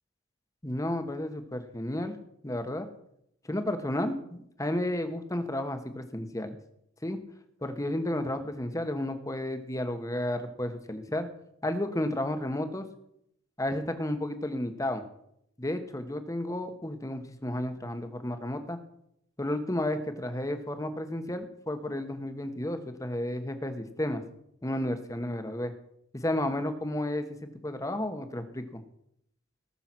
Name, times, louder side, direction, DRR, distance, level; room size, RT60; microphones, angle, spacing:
voice 1, 0.6-2.1 2.4-2.9 3.4-6.6 7.0-7.2 7.6-11.3 11.6-12.9 13.6-15.0 15.6-18.8 19.4-24.2 24.6-25.7 26.1-28.8, left 1 dB, 15° left, 8 dB, 1.2 m, -32 dB
18.5 x 6.8 x 6.0 m, 0.75 s
head